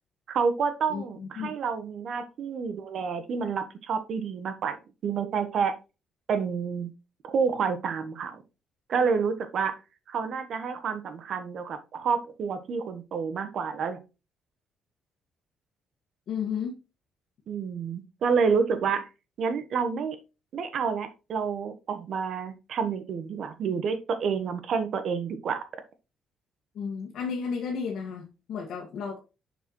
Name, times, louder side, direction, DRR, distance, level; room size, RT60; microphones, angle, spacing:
voice 1, 0.3-4.8 5.0-5.7 6.3-6.9 7.2-8.4 8.9-9.7 10.1-14.0 17.5-19.1 19.4-20.2 20.5-25.6, right 6 dB, 60° right, 10 dB, 1.1 m, -29 dB
voice 2, 0.9-1.5 16.3-16.8 26.7-29.2, left 6 dB, 65° left, 0 dB, 1.7 m, -33 dB
6.6 x 6.6 x 3.0 m, 0.29 s
cardioid pair, 120°, 0 cm